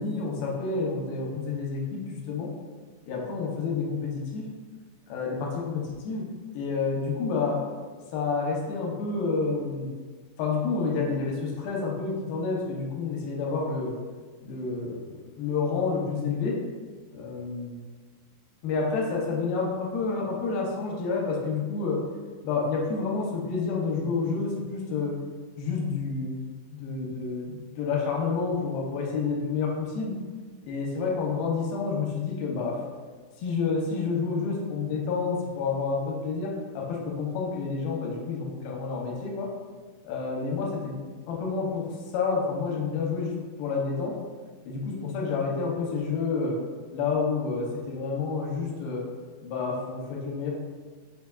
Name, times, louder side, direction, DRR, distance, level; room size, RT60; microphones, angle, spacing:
voice 1, 0.0-2.5 3.1-4.4 5.1-6.2 6.5-7.6 8.1-9.9 10.4-13.9 14.4-15.0 15.4-16.6 17.1-17.7 18.6-22.0 22.4-25.1 25.6-26.3 26.7-30.2 30.6-32.8 33.4-39.5 40.0-40.9 41.3-41.9 42.1-44.1 44.7-46.6 46.9-49.0 49.4-50.5, left 4 dB, 80° left, -1 dB, 2.4 m, -29 dB
5.8 x 3.4 x 2.2 m, 1.4 s
omnidirectional pair, 4.3 m